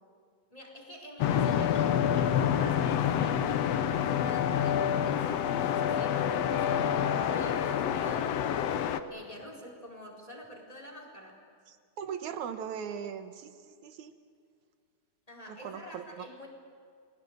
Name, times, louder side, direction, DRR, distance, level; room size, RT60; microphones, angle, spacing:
voice 1, 0.5-8.7 9.1-11.4 15.3-16.5, equal, 10° left, 1 dB, 4.2 m, -47 dB
sound 1, 1.2-9.0, left 9 dB, 65° left, 1.9 m, -27 dB
voice 2, 11.7-14.1 15.5-16.3, right 8 dB, 75° right, 9 dB, 2.5 m, -39 dB
30.0 x 20.5 x 8.0 m, 2.2 s
omnidirectional pair, 3.5 m